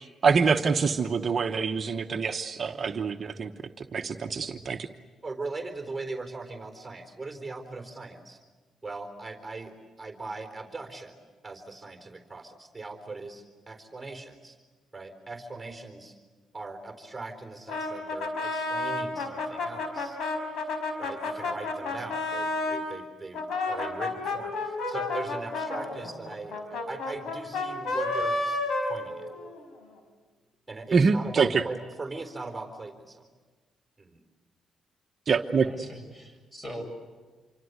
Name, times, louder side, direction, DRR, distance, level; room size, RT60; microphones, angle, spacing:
voice 1, 0.2-3.5 3.8-4.9 30.9-31.6 35.3-35.7, right 5 dB, 45° right, 5 dB, 1.0 m, -25 dB
voice 2, 5.2-8.4 8.8-9.7 10.0-11.1 11.4-14.6 14.9-16.2 16.5-20.2 21.0-23.4 23.7-29.3 30.7-33.3 34.0-34.2, right 3 dB, 15° right, 6 dB, 4.0 m, -40 dB
Brass instrument, 17.7-22.9 23.3-29.6, left 2 dB, 75° left, 4.8 m, -31 dB
voice 3, 35.7-36.8, equal, 20° left, 5 dB, 7.5 m, -41 dB
27.0 x 24.5 x 8.1 m, 1.3 s
cardioid pair, 90°, 0 cm